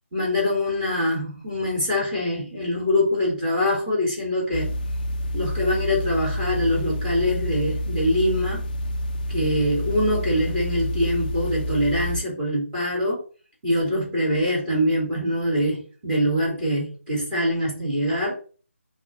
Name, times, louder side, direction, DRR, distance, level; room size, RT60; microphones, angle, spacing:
voice 1, 0.1-4.7 5.3-8.6 9.3-13.2 13.6-18.3, left 1 dB, 10° right, -5 dB, 3.0 m, -24 dB
sound 1, 4.5-12.2, equal, 40° left, 0.5 m, -28 dB
6.0 x 2.9 x 5.5 m, 0.39 s
figure-of-eight pair, 150°, 7 cm